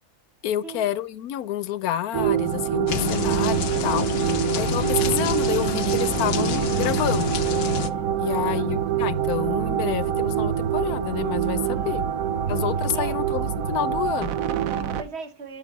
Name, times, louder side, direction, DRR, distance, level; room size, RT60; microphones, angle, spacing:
voice 1, 0.4-7.3 8.2-12.0 12.5-14.4, left 12 dB, 80° left, 1.1 m, -29 dB
sound 1, 2.1-15.0, right 10 dB, 70° right, 1.1 m, -25 dB
sound 2, 2.9-7.9, left 10 dB, 60° left, 0.7 m, -28 dB
voice 2, 8.2-8.7 11.5-12.5 12.9-13.2 14.5-15.6, right 5 dB, 50° right, 1.2 m, -41 dB
9.2 x 6.9 x 4.1 m
omnidirectional pair, 1.6 m